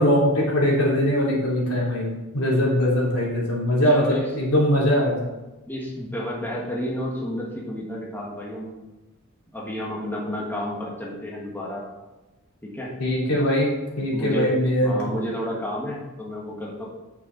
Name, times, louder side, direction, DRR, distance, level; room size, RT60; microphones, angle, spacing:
voice 1, 0.0-5.3 13.0-14.9, equal, 85° left, -4 dB, 3.2 m, -21 dB
voice 2, 3.8-4.3 5.7-8.7 9.5-11.8 12.6-12.9 14.1-16.9, equal, 10° left, -4 dB, 1.5 m, -31 dB
8.7 x 6.9 x 4.0 m, 1.1 s
head